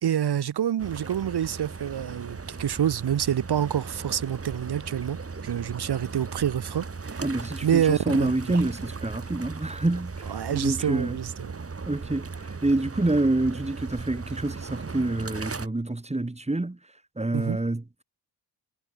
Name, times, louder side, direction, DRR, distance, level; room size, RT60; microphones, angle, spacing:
voice 1, 0.0-5.2 5.4-7.3 7.6-8.6 10.3-11.5 17.3-17.6, right 9 dB, 70° right, 1.9 m, -27 dB
sound 1, 0.8-15.7, right 4 dB, 35° right, 3.5 m, -37 dB
voice 2, 7.2-10.2 10.5-11.2 11.8-16.8 17.2-18.0, right 2 dB, 15° right, 4.9 m, -27 dB
cardioid pair, 80°, 41 cm